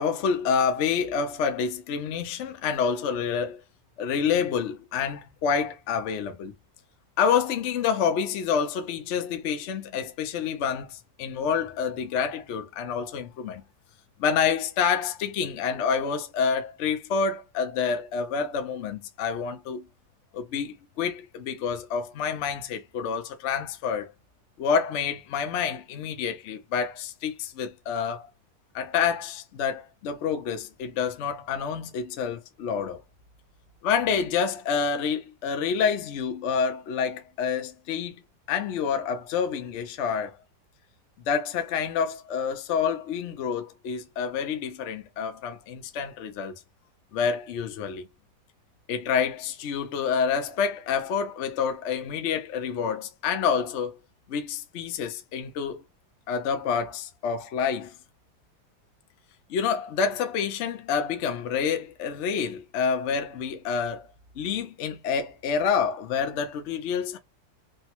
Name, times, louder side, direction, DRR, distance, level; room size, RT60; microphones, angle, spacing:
voice 1, 0.0-3.6 4.0-6.5 7.2-13.6 14.2-19.9 20.3-24.1 24.6-28.3 28.7-33.0 33.8-38.2 38.5-40.4 41.3-46.5 47.1-48.1 48.9-54.0 54.3-55.8 56.3-57.9 59.5-64.1 64.4-67.2, left 6 dB, 75° left, 0.6 m, -28 dB
3.3 x 2.0 x 2.8 m
omnidirectional pair, 2.0 m